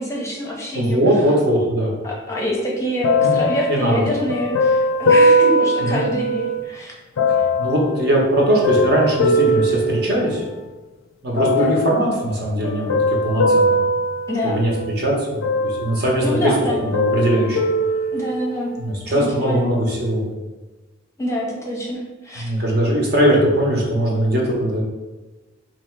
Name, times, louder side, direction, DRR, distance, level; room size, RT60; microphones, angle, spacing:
voice 1, 0.0-1.0 2.0-6.9 7.3-7.5 11.6-11.8 14.3-14.6 16.2-16.9 18.1-18.7 19.1-19.7 21.2-22.5, equal, 15° left, -3 dB, 0.7 m, -25 dB
voice 2, 0.7-1.9 3.2-3.4 3.7-4.0 5.8-6.0 7.2-10.5 11.2-13.8 14.4-16.5 16.8-17.6 18.8-20.3 22.4-24.8, right 1 dB, 55° right, -2 dB, 1.0 m, -20 dB
sound 1, 3.0-6.6 7.2-10.7 11.4-12.0 12.6-15.0 15.4-16.4 16.7-18.7 19.4-19.5, equal, 85° left, 0.4 m, -20 dB
3.0 x 2.8 x 4.5 m, 1.2 s
head